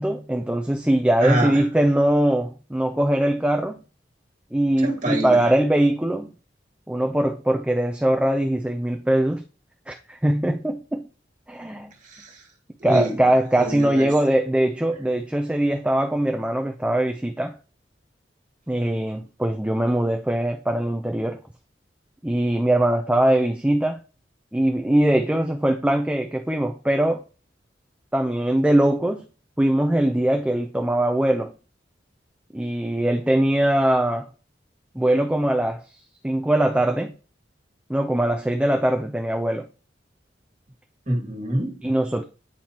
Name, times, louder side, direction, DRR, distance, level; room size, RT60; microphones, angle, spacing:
voice 1, 0.0-3.8 4.5-6.3 6.9-9.4 9.9-11.1 11.5-11.9 12.8-17.6 18.7-21.4 22.2-24.0 24.5-27.2 28.1-29.3 29.6-31.5 32.5-34.3 35.0-35.8 36.2-37.1 37.9-39.6 41.8-42.2, right 1 dB, 5° right, 0.4 m, -21 dB
voice 2, 1.2-1.6 4.8-5.5 12.0-12.4 12.8-13.2 13.6-14.4 41.1-41.8, right 1 dB, 45° right, 1.9 m, -26 dB
9.0 x 4.5 x 2.9 m
head